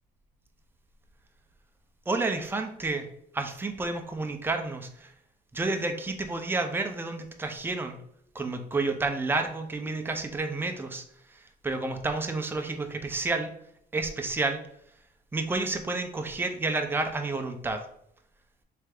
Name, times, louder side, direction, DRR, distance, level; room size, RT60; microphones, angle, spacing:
voice 1, 2.1-3.0 3.3-5.1 5.5-8.0 8.3-11.0 11.6-13.5 13.9-14.6 15.3-17.8, right 3 dB, 10° right, 5 dB, 0.5 m, -30 dB
3.6 x 3.3 x 3.4 m, 0.71 s
cardioid pair, 110°, 17 cm